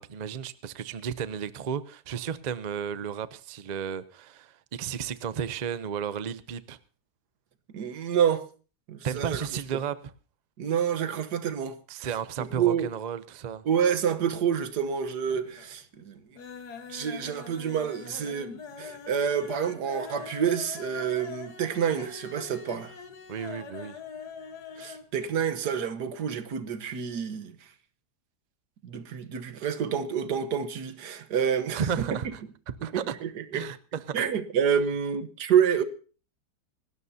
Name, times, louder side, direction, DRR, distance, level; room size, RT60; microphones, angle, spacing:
voice 1, 0.0-6.8 9.0-10.1 11.9-13.6 23.3-24.0 31.7-32.4 32.8-33.2 33.5-34.3, right 7 dB, 50° right, 0.5 m, -33 dB
voice 2, 7.7-8.4 8.9-9.5 10.6-11.8 12.4-12.9 13.6-16.2 16.9-23.0 24.8-27.5 28.8-32.1 32.8-33.7 34.1-35.8, right 8 dB, 80° right, 1.7 m, -28 dB
sound 1, 14.3-14.9 15.2-15.8 16.1-25.1 25.4-25.5 25.8-25.9, left 6 dB, 75° left, 2.0 m, -43 dB
26.5 x 12.5 x 2.8 m
omnidirectional pair, 1.7 m